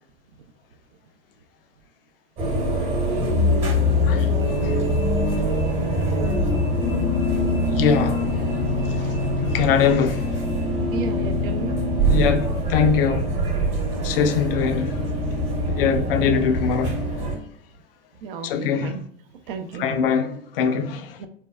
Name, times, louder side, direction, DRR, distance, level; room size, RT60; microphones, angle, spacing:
sound 1, 2.4-17.4, left 1 dB, 35° right, 1.1 m, -23 dB
voice 1, 4.0-4.3 4.6-4.8 6.9-7.0 7.7-8.5 8.8-10.8 12.1-13.3 14.0-15.0 15.7-17.0 18.4-18.9 19.8-21.2, left 7 dB, 55° left, 0.5 m, -23 dB
voice 2, 10.9-11.7 18.2-19.0 19.5-20.0 21.2-21.3, right 6 dB, 55° right, 0.5 m, -33 dB
3.5 x 2.3 x 2.2 m
figure-of-eight pair, 85°, 33 cm